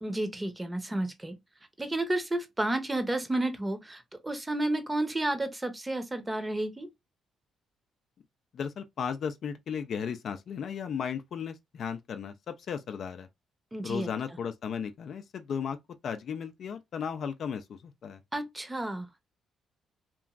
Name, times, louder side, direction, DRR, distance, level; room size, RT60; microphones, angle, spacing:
voice 1, 0.0-1.4 1.8-6.9 13.7-14.1 18.3-19.1, right 1 dB, 15° right, 0.7 m, -31 dB
voice 2, 8.5-13.3 13.8-15.8 16.0-18.2, left 7 dB, 65° left, 0.4 m, -35 dB
2.9 x 2.4 x 2.3 m
supercardioid pair, 65°, 0 cm